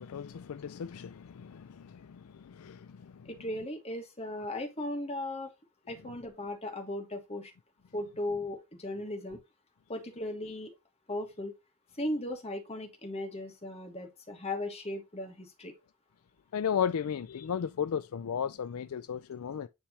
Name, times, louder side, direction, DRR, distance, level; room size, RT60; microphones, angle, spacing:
voice 1, 0.0-3.3 16.5-19.7, left 7 dB, 75° left, 0.4 m, -35 dB
voice 2, 3.2-5.5 5.9-7.5 7.9-9.4 9.9-10.7 11.1-11.5 12.0-15.7, left 1 dB, 30° left, 1.5 m, -37 dB
10.0 x 3.4 x 2.8 m
head